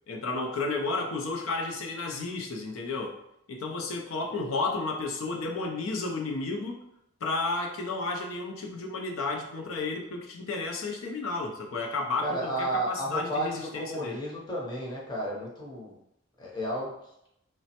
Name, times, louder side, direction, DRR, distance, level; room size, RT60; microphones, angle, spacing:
voice 1, 0.1-3.2 3.5-6.8 7.2-14.2, left 3 dB, 80° left, 3 dB, 0.5 m, -32 dB
voice 2, 12.2-16.0 16.4-16.9, right 1 dB, 20° left, -4 dB, 0.7 m, -32 dB
3.1 x 2.0 x 2.8 m, 0.79 s
head